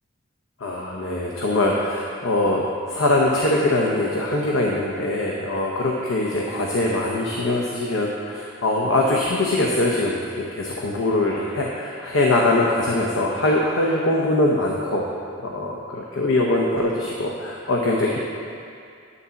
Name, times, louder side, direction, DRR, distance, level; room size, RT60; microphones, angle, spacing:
voice 1, 0.6-15.1 15.4-18.2, left 2 dB, 70° left, -2 dB, 0.8 m, -22 dB
10.0 x 4.1 x 6.9 m, 2.4 s
head